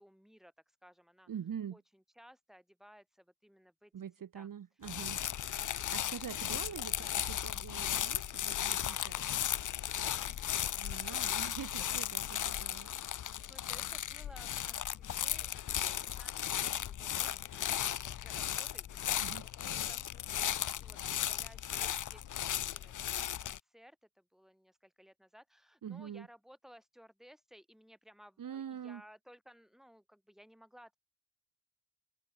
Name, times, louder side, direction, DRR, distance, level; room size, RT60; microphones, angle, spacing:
voice 1, 0.0-1.3 1.7-3.9 4.3-4.5 4.8-4.9 5.3-5.8 6.5-7.1 10.0-11.1 11.5-11.6 11.8-11.9 13.4-31.0, equal, ahead, 7.7 m, -59 dB
voice 2, 1.3-1.8 3.9-5.2 5.9-9.2 10.8-12.9 19.2-19.4 25.8-26.3 28.4-29.0, right 8 dB, 50° right, 1.1 m, -44 dB
sound 1, 4.8-23.6, left 10 dB, 50° left, 0.5 m, -36 dB
wide cardioid pair, 175°, 41 cm